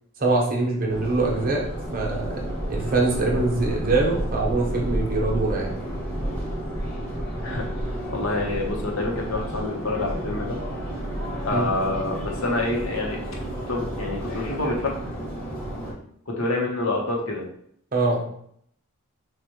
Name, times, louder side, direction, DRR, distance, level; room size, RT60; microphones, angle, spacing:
voice 1, 0.2-1.6 1.9-5.8 11.5-11.7 17.9-18.2, right 2 dB, 40° right, -1 dB, 1.0 m, -24 dB
Subway metro underground, 0.9-15.9, right 1 dB, 5° left, 1.5 m, -31 dB
voice 2, 8.1-10.6 11.4-13.2 13.7-14.9 16.3-17.4, left 2 dB, 65° left, 0 dB, 1.1 m, -27 dB
6.3 x 2.5 x 3.0 m, 0.66 s
head